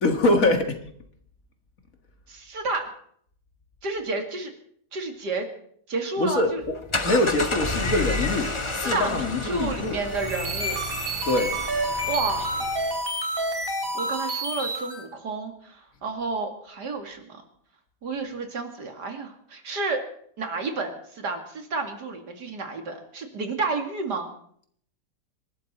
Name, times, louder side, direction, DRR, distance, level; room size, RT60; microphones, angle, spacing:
voice 1, 0.0-0.8 6.2-6.7 7.0-10.0 11.3-11.5, left 2 dB, 55° left, 5 dB, 2.2 m, -24 dB
voice 2, 2.3-2.9 3.8-4.5 4.9-5.5 5.9-6.6 8.8-10.8 12.1-12.5 13.9-17.4 18.0-20.1 20.4-24.3, right 3 dB, 75° right, 5 dB, 2.9 m, -31 dB
sound 1, 6.6-13.0, left 2 dB, 20° left, 1.1 m, -31 dB
sound 2, 10.0-15.0, right 1 dB, 30° right, 3.7 m, -29 dB
26.5 x 12.5 x 4.3 m, 0.63 s
omnidirectional pair, 1.8 m